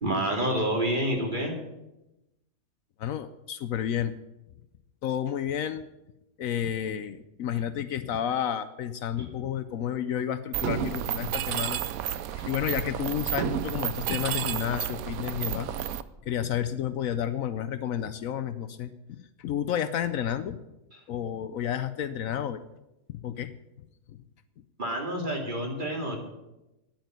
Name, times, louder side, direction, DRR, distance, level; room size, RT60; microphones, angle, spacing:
voice 1, 0.0-1.5 24.8-26.2, right 1 dB, 35° right, 1 dB, 2.5 m, -28 dB
voice 2, 3.0-4.1 5.0-5.9 6.4-11.8 12.3-15.7 16.3-20.6 21.1-22.6 23.1-23.5 24.1-24.2, left 9 dB, 70° left, 12 dB, 1.0 m, -31 dB
Mechanisms, 10.5-16.0, right 11 dB, 75° right, 1.1 m, -31 dB
9.5 x 8.9 x 9.2 m, 0.95 s
omnidirectional pair, 1.6 m